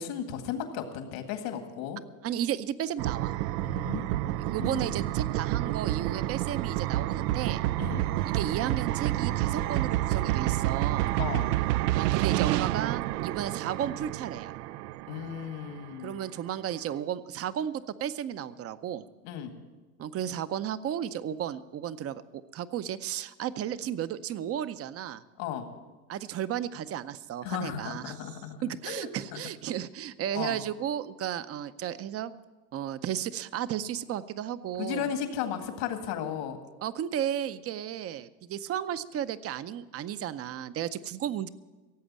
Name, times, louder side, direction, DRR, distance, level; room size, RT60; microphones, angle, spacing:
voice 1, 0.0-2.0 3.6-4.1 4.6-5.0 7.8-8.1 11.2-11.5 15.1-16.2 19.2-19.5 25.4-25.7 27.4-29.4 30.3-30.6 34.8-36.6, left 9 dB, 70° left, 6 dB, 2.0 m, -35 dB
voice 2, 2.2-3.3 4.4-7.6 8.2-11.2 11.9-14.5 16.0-19.0 20.0-22.2 22.5-25.2 26.1-28.3 28.6-32.3 32.7-35.1 36.8-41.5, right 10 dB, 30° right, 14 dB, 0.6 m, -34 dB
sound 1, 3.0-15.7, right 15 dB, 90° right, 0.5 m, -29 dB
17.0 x 7.8 x 7.4 m, 1.2 s
supercardioid pair, 110°, 46 cm